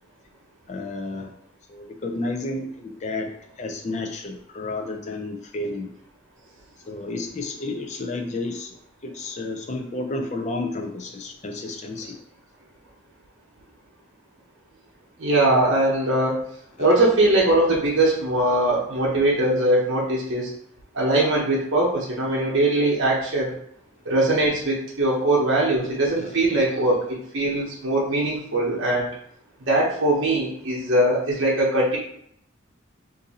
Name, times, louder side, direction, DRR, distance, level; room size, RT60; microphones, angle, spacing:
voice 1, 0.7-1.3 1.7-3.3 3.6-5.9 6.9-8.8 9.0-12.2 26.2-26.4, left 2 dB, 35° left, 3 dB, 0.4 m, -31 dB
voice 2, 15.2-16.3 16.8-20.5 20.9-23.5 24.0-27.0 27.3-29.1 29.7-32.0, right 1 dB, 65° right, -5 dB, 0.8 m, -21 dB
2.6 x 2.6 x 4.0 m, 0.70 s
head